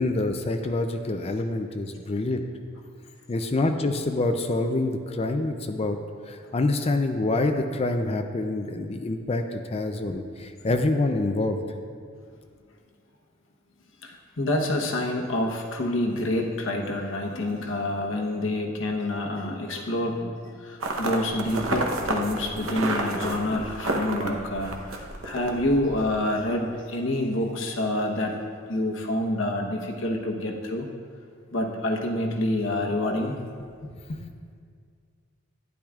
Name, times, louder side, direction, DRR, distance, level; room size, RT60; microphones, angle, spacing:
voice 1, 0.0-2.4 3.3-6.0 6.3-11.6, left 2 dB, 30° left, 6 dB, 0.4 m, -26 dB
voice 2, 14.0-28.4 28.7-30.9 31.5-33.4 33.8-34.2, left 1 dB, 70° left, 1 dB, 1.0 m, -27 dB
sound 1, 20.8-26.1, right 2 dB, 85° right, 0.9 m, -30 dB
12.0 x 10.0 x 2.4 m, 2.1 s
head